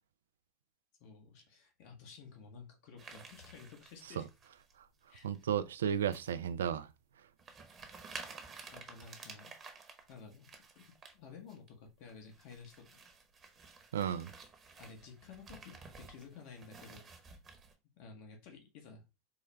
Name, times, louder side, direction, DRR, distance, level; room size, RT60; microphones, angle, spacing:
voice 1, 1.0-4.3 5.1-5.3 8.7-9.5 10.1-10.5 10.7-10.8 11.1-13.0 14.8-17.1 18.0-19.0, left 5 dB, 55° left, 1.1 m, -53 dB
sound 1, 3.0-4.7 5.2-5.6 6.1-6.3 6.8-6.9 7.4-11.1 11.5-11.7 12.1-17.7, right 4 dB, 30° right, 1.0 m, -52 dB
voice 2, 5.2-6.9 13.9-14.3, right 9 dB, 80° right, 0.3 m, -33 dB
4.5 x 2.1 x 3.3 m
hypercardioid pair, 90°, 0 cm